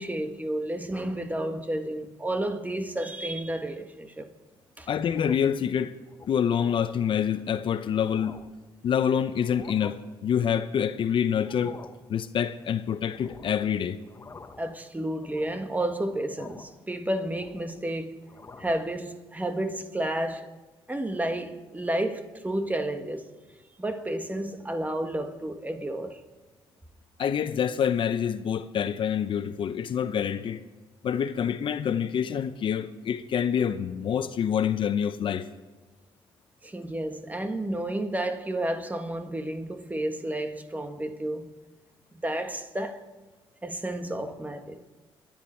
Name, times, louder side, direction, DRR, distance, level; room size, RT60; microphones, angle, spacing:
voice 1, 0.0-4.3 4.8-4.9 14.6-18.2 18.6-20.5 20.9-23.3 23.8-26.2 36.6-41.5 42.1-43.1 43.6-44.9, right 1 dB, 15° right, 1.5 m, -31 dB
voice 2, 4.9-5.9 6.3-8.4 8.8-11.8 12.1-14.0 27.2-30.6 31.0-35.5, left 8 dB, 60° left, 0.7 m, -26 dB
sound 1, 5.0-5.6 6.1-6.3 6.7-6.9 7.5-7.6 7.9-8.6 9.4-9.9 11.4-12.0 13.1-13.7 14.0-14.7 15.2-15.7 16.4-16.8 17.2-17.9 18.2-18.9, left 4 dB, 30° left, 1.2 m, -47 dB
27.0 x 10.5 x 4.5 m
supercardioid pair, 70°, 10 cm